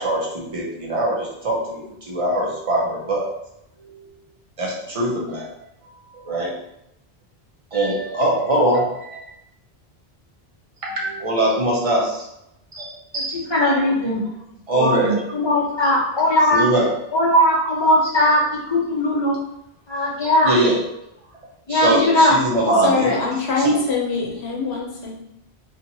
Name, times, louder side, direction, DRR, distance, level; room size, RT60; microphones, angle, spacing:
voice 1, 0.0-3.3 3.8-4.0 4.6-5.5 5.8-6.6 7.7-9.3 10.8-12.3 12.7-13.9 14.7-15.2 15.8-15.9 16.5-16.9 20.4-20.8 21.7-23.1 23.6-23.8, right 1 dB, 40° right, -3 dB, 0.7 m, -22 dB
voice 2, 13.3-14.2 14.7-16.7 17.1-19.4 19.9-20.6 21.7-22.3 23.0-23.2, left 1 dB, 30° left, -5 dB, 0.8 m, -19 dB
voice 3, 22.8-25.2, left 4 dB, 75° left, -2 dB, 1.0 m, -23 dB
2.8 x 2.4 x 2.7 m, 0.81 s
omnidirectional pair, 1.1 m